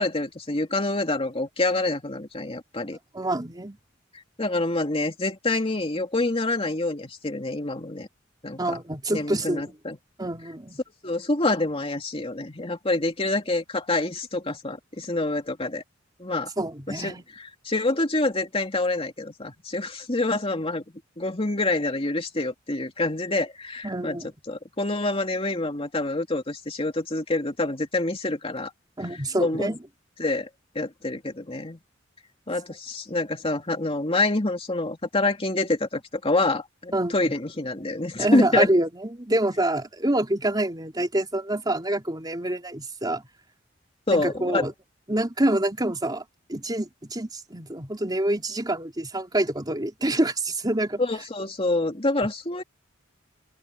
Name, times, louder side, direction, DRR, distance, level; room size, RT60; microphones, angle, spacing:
voice 1, 0.0-3.0 4.4-8.1 8.4-8.8 9.1-10.0 11.0-15.8 16.2-16.5 16.9-20.8 21.2-24.2 24.5-28.7 29.4-29.7 30.2-30.5 30.7-31.8 32.5-38.7 44.1-44.7 51.0-52.6, left 2 dB, 30° left, 2.8 m, -26 dB
voice 2, 3.1-3.8 8.6-9.8 10.2-10.8 16.6-17.2 23.8-24.3 29.0-29.8 36.9-37.3 38.2-43.2 44.1-44.7 45.1-46.2 46.5-51.0, right 1 dB, 20° right, 3.6 m, -26 dB
open air
head